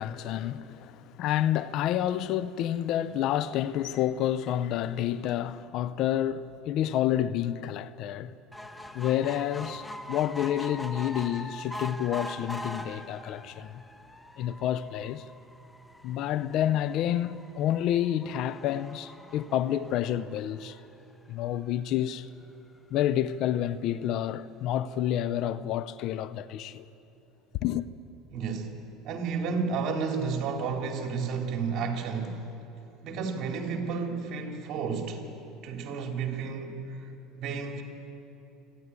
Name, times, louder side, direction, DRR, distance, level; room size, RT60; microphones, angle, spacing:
voice 1, 0.0-8.3 8.9-13.7 14.4-15.2 16.0-20.8 21.3-22.3 22.9-26.9 27.6-27.9, left 11 dB, 60° left, 0.6 m, -29 dB
sound 1, 8.5-21.1 21.7-21.8 22.1-22.2 22.4-22.5, left 1 dB, 10° left, 1.1 m, -43 dB
voice 2, 28.3-28.8 29.0-32.5 33.0-35.3 35.6-37.1 37.4-37.8, right 5 dB, 55° right, 3.0 m, -32 dB
27.5 x 11.0 x 9.7 m
supercardioid pair, 95°, 0 cm